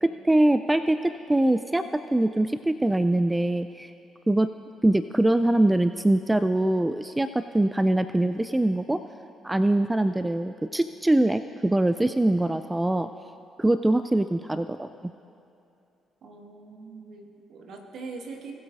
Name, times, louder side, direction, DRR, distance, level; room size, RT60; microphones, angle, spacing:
voice 1, 0.0-3.9 4.3-4.5 4.8-9.0 9.4-13.1 13.6-14.9, right 1 dB, 15° right, 11 dB, 0.3 m, -23 dB
voice 2, 16.2-18.5, right 4 dB, 60° right, 2 dB, 1.4 m, -42 dB
19.5 x 8.3 x 2.5 m, 2.7 s
figure-of-eight pair, 40°, 0 cm